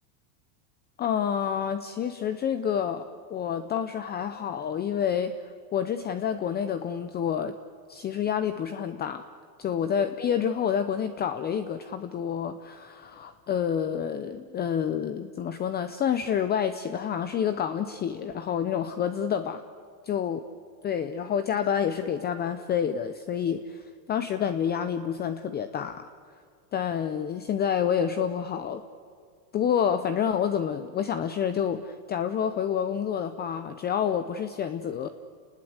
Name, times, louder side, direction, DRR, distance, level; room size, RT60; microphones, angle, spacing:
voice 1, 1.0-5.3 5.7-7.5 7.9-9.2 9.6-19.6 20.1-20.4 20.8-23.8 24.1-26.1 26.7-28.8 29.5-35.1, left 8 dB, 20° left, 11 dB, 0.7 m, -28 dB
30.0 x 20.0 x 8.0 m, 2.1 s
supercardioid pair, 140°, 48 cm